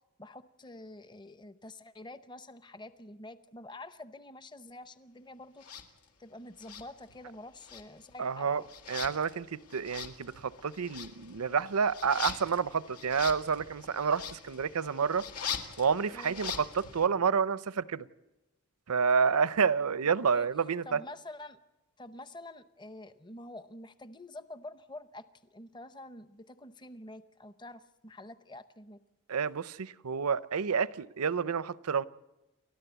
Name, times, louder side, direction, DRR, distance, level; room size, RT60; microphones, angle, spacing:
voice 1, 0.2-5.6 6.2-8.7 16.1-16.4 20.3-20.5 20.8-21.6 22.0-25.3 25.5-29.0, left 2 dB, 20° left, 0.7 m, -47 dB
sound 1, 5.6-5.9 6.6-7.4 7.6-17.1, left 7 dB, 90° left, 2.0 m, -42 dB
voice 2, 8.2-8.6 8.9-15.2 15.8-18.1 18.9-21.0 29.3-32.1, right 6 dB, 85° right, 0.6 m, -29 dB
30.0 x 13.5 x 8.1 m
head